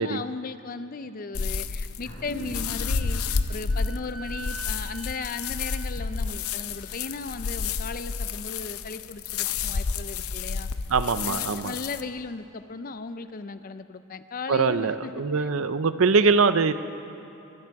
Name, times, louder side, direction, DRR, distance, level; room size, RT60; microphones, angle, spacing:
voice 1, 0.0-10.7 11.3-15.1 15.4-15.5, left 4 dB, 40° left, 12 dB, 0.5 m, -36 dB
sound 1, 1.3-12.0, left 5 dB, 85° left, 0.6 m, -30 dB
sound 2, 2.0-6.9, equal, 70° left, 4.8 m, -45 dB
Wind instrument woodwind instrument, 2.8-7.2, right 2 dB, 5° right, 1.3 m, -46 dB
voice 2, 10.9-11.7 14.5-16.7, right 4 dB, 70° right, 13 dB, 0.6 m, -22 dB
22.0 x 12.5 x 4.7 m, 2.8 s
head